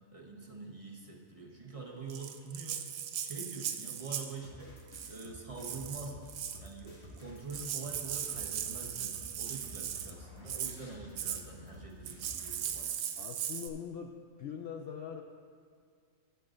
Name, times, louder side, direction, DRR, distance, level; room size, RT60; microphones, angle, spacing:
voice 1, 0.1-2.8 3.2-4.7 5.1-6.2 6.6-13.0, right 3 dB, 25° right, -2 dB, 1.1 m, -45 dB
Rattle (instrument), 2.1-4.4 4.9-5.3 5.6-6.7 7.2-7.3 7.5-10.1 10.5-10.8 11.2-11.4 12.0-13.7, right 9 dB, 90° right, 1.1 m, -38 dB
sound 1, 4.4-12.5, left 1 dB, 45° left, 2.2 m, -51 dB
voice 2, 13.2-15.2, left 7 dB, 60° left, 3 dB, 0.6 m, -42 dB
19.5 x 7.8 x 2.6 m, 2.1 s
omnidirectional pair, 1.4 m